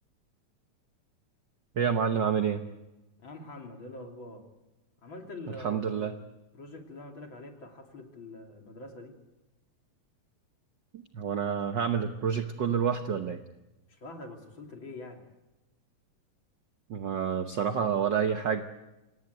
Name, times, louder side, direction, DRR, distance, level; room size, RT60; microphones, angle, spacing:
voice 1, 1.8-2.6 5.6-6.1 10.9-13.4 16.9-18.6, right 7 dB, 75° right, 7 dB, 1.0 m, -28 dB
voice 2, 3.2-4.4 5.0-6.1 6.5-9.2 13.9-15.3, left 2 dB, 40° left, 3 dB, 3.4 m, -44 dB
26.5 x 18.5 x 9.3 m, 1.0 s
omnidirectional pair, 3.5 m